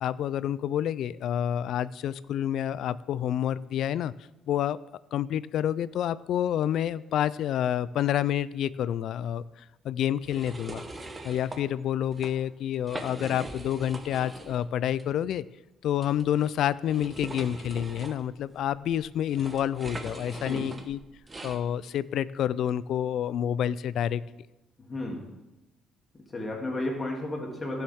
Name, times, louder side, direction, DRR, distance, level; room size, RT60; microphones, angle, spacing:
voice 1, 0.0-4.1 4.5-4.8 5.1-10.8 11.2-15.4 15.8-21.0 21.4-24.2, left 10 dB, 70° left, 18 dB, 0.3 m, -28 dB
sound 1, 10.2-11.6 12.0-12.3 12.7-14.6 14.9-15.0 16.0-21.6, right 2 dB, 20° right, 1.1 m, -42 dB
voice 2, 20.3-20.6 24.9-25.2 26.3-27.8, left 1 dB, 25° left, -1 dB, 2.7 m, -33 dB
15.5 x 7.1 x 3.6 m, 0.95 s
cardioid pair, 100°, 0 cm